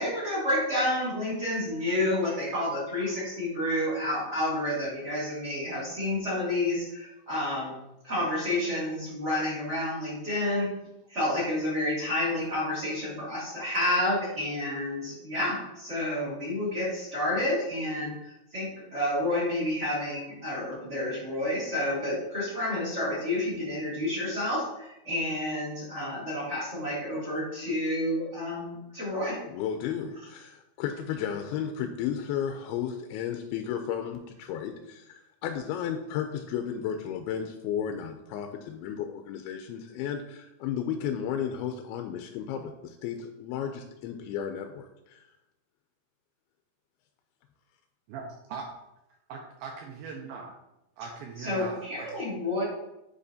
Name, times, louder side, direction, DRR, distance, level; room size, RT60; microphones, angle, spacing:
voice 1, 0.0-7.8 8.0-10.7 11.1-29.4 51.4-52.6, left 1 dB, 20° right, -8 dB, 2.0 m, -30 dB
voice 2, 29.5-45.2, left 8 dB, 85° left, 6 dB, 2.4 m, -33 dB
voice 3, 48.1-48.7 49.3-50.5 51.0-52.1, right 5 dB, 80° right, 1 dB, 2.2 m, -40 dB
8.9 x 4.9 x 2.7 m, 0.90 s
omnidirectional pair, 4.7 m